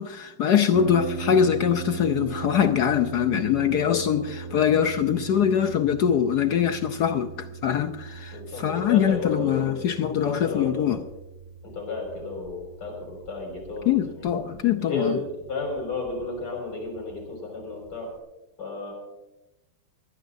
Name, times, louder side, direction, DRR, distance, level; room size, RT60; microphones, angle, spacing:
voice 1, 0.0-11.0 13.9-15.2, left 9 dB, 70° left, 1.0 m, -23 dB
Harp, 0.7-18.2, right 6 dB, 15° right, 1.5 m, -39 dB
voice 2, 3.5-4.2 8.3-11.1 11.6-14.1 14.8-18.1 18.6-18.9, left 3 dB, 90° left, 6.7 m, -33 dB
21.5 x 15.5 x 2.6 m
omnidirectional pair, 2.3 m